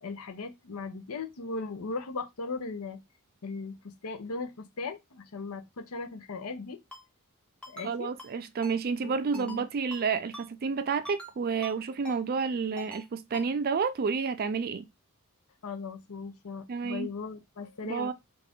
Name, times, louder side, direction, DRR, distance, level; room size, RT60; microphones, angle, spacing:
voice 1, 0.0-3.0 3.4-6.8 7.7-8.1 9.0-9.7 15.6-18.1, left 4 dB, 80° left, 0.7 m, -38 dB
Ringtone, 6.9-7.0 7.6-7.9 8.2-8.3 8.6-8.8 9.3-9.6 9.9-10.0 10.3-10.5 11.0-11.3 11.6-11.7 12.0-12.2 12.8-13.0 13.3-13.5, left 1 dB, 5° left, 1.0 m, -44 dB
voice 2, 7.8-14.9 16.7-17.1 17.8-18.1, right 5 dB, 40° right, 0.4 m, -30 dB
3.7 x 2.5 x 3.4 m
head